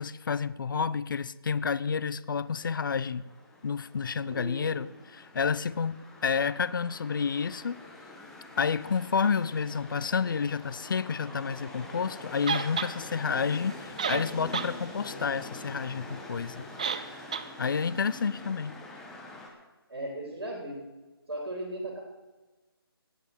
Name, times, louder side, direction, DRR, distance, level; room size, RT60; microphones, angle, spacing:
voice 1, 0.0-3.2 3.6-7.8 8.6-16.6 17.6-18.8, left 6 dB, 55° left, 0.5 m, -30 dB
sound 1, 2.4-19.5, left 1 dB, 5° left, 1.0 m, -45 dB
voice 2, 4.3-4.7 19.9-20.8 21.3-22.0, right 1 dB, 75° right, 3.8 m, -36 dB
sound 2, 12.5-12.9 13.7-13.8 14.0-14.7 15.1-15.2 16.8-17.1 17.3-17.5, right 6 dB, 20° right, 0.3 m, -30 dB
19.5 x 7.9 x 4.5 m
figure-of-eight pair, 160°, 13 cm